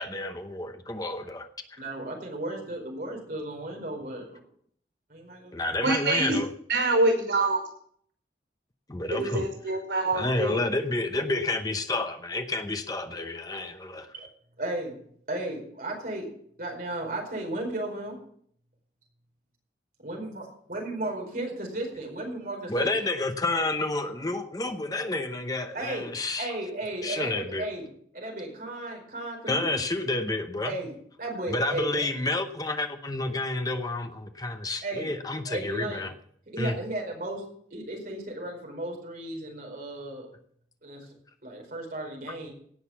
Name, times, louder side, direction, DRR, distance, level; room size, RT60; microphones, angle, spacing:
voice 1, 0.0-1.8 5.5-6.5 8.9-9.5 10.1-14.1 22.7-26.5 27.0-27.7 29.5-30.7 31.5-36.1 36.6-36.7 42.3-42.4, left 2 dB, 20° left, 7 dB, 0.8 m, -30 dB
voice 2, 1.8-4.4 5.1-5.8 14.1-14.3 14.6-15.0 15.3-16.3 16.6-18.2 20.0-22.9 25.7-26.1 26.4-27.9 28.1-29.8 30.6-30.9 31.2-32.0 34.8-35.1 35.5-36.0 36.5-37.4 37.7-40.3 40.8-41.1 41.4-42.5, right 1 dB, 50° right, 1 dB, 4.8 m, -35 dB
voice 3, 5.8-6.4 6.7-7.6 9.1-10.6, right 2 dB, 85° right, 3 dB, 5.7 m, -25 dB
17.5 x 6.5 x 7.1 m, 0.63 s
head